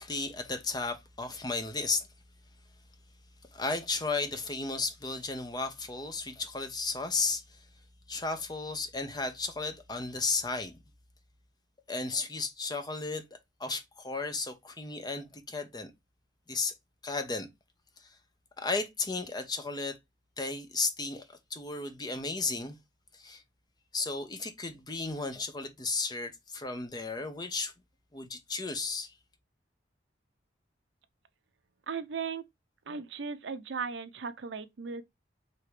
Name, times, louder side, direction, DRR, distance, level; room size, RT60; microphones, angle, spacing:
voice 1, 0.0-2.1 3.5-7.6 8.1-10.8 11.9-13.2 13.6-15.9 16.5-16.7 17.0-17.5 18.0-18.2 18.6-20.0 20.4-22.8 23.1-23.4 23.9-27.7 28.1-29.1, left 3 dB, 20° left, 0.7 m, -34 dB
voice 2, 31.9-32.5 32.9-35.0, right 5 dB, 75° right, 0.6 m, -37 dB
4.7 x 2.9 x 3.2 m
head